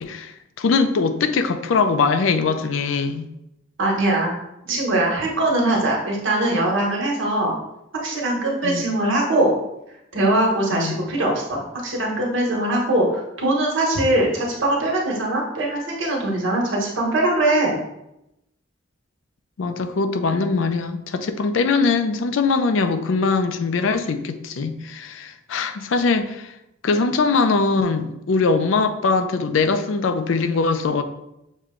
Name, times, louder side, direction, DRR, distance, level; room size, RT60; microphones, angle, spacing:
voice 1, 0.0-3.2 8.6-8.8 10.7-11.0 19.6-26.5 26.8-31.0, left 4 dB, 75° left, 9 dB, 0.4 m, -21 dB
voice 2, 3.8-4.3 4.7-7.6 8.0-9.5 10.1-17.8, right 1 dB, 75° right, -2 dB, 1.2 m, -21 dB
6.3 x 2.2 x 3.7 m, 0.86 s
head